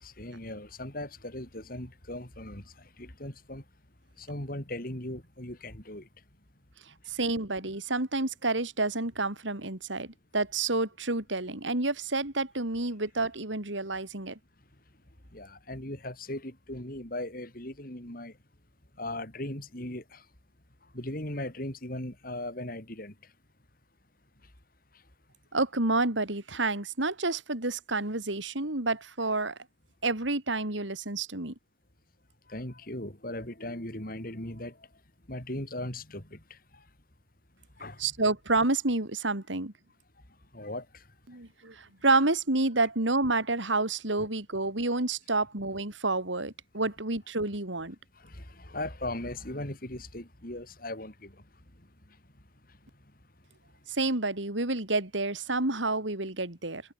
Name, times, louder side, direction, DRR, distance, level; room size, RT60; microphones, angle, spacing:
voice 1, 0.0-2.6 3.0-3.6 4.2-6.0 15.3-18.3 19.0-20.2 20.9-23.1 32.5-34.7 35.3-36.4 37.8-38.0 40.5-40.8 44.2-44.3 48.2-51.3, left 1 dB, 50° left, 4.7 m, -38 dB
voice 2, 7.1-14.4 25.5-29.6 30.0-31.5 38.0-39.7 41.3-47.9 53.9-56.8, right 2 dB, 80° right, 3.5 m, -29 dB
head